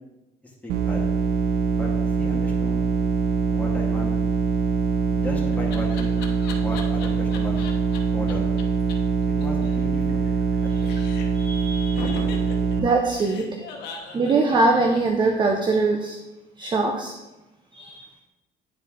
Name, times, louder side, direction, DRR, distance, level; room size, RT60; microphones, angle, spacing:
voice 1, 0.6-1.1 1.7-1.9 2.2-2.9 3.5-4.2 5.1-6.2 6.5-7.6 8.1-8.5 9.4-10.3 10.8-11.0, left 1 dB, 10° left, -3 dB, 1.9 m, -35 dB
sound 1, 0.7-12.8, right 5 dB, 80° right, 0.7 m, -23 dB
Laughter, 4.9-8.0 8.3-8.4 8.6-8.7 8.9-9.0 9.2-10.6 10.8-11.5 12.0-15.7, left 5 dB, 85° left, 1.0 m, -39 dB
voice 2, 10.6-11.0 11.3-12.2 12.8-13.6 14.0-16.2 16.6-17.1 17.7-18.1, right 3 dB, 25° right, 3 dB, 0.7 m, -23 dB
9.5 x 4.1 x 3.7 m, 1.0 s
cardioid pair, 110°, 17 cm